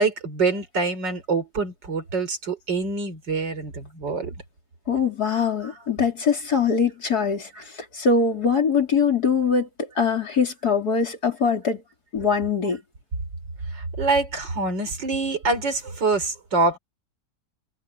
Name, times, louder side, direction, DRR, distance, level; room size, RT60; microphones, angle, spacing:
voice 1, 0.0-4.3 5.6-5.7 13.7-16.8, right 3 dB, 80° right, 4.9 m, -25 dB
voice 2, 4.9-7.5 7.9-9.7 10.0-11.8 12.1-12.8, left 5 dB, 60° left, 4.4 m, -22 dB
omnidirectional pair, 1.9 m